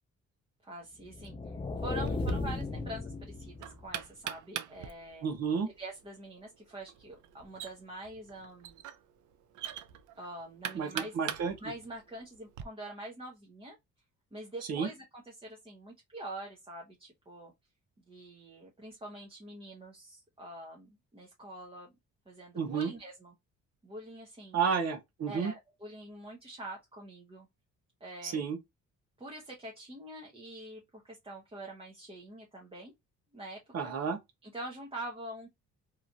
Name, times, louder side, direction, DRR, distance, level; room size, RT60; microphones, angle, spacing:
voice 1, 0.6-5.3 5.8-8.8 10.2-11.2 11.6-13.8 14.3-17.5 18.1-21.9 22.3-23.3 23.8-24.6 25.3-27.5 28.0-28.4 29.2-32.9 33.3-33.9 34.4-35.5, right 1 dB, 20° right, 0.9 m, -45 dB
sound 1, 1.1-4.0, left 3 dB, 20° left, 0.3 m, -36 dB
Knock, 2.0-12.6, right 10 dB, 80° right, 0.5 m, -43 dB
voice 2, 5.2-5.7 10.7-11.5 14.7-14.9 22.6-22.9 24.5-25.5 28.2-28.6 33.7-34.2, right 6 dB, 60° right, 0.9 m, -31 dB
2.9 x 2.5 x 2.5 m
cardioid pair, 90°, 30 cm